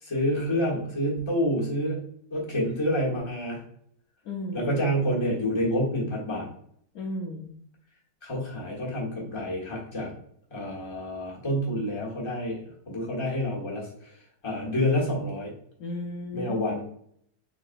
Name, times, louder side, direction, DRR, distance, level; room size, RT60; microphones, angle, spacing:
voice 1, 0.0-2.0 2.3-3.6 4.5-6.5 8.2-10.1 10.5-13.9 14.4-15.5 16.3-16.8, equal, 15° left, -4 dB, 1.0 m, -28 dB
voice 2, 4.2-5.0 6.9-7.5 15.8-16.8, left 2 dB, 80° left, -1 dB, 0.8 m, -35 dB
3.9 x 3.7 x 2.5 m, 0.66 s
omnidirectional pair, 2.3 m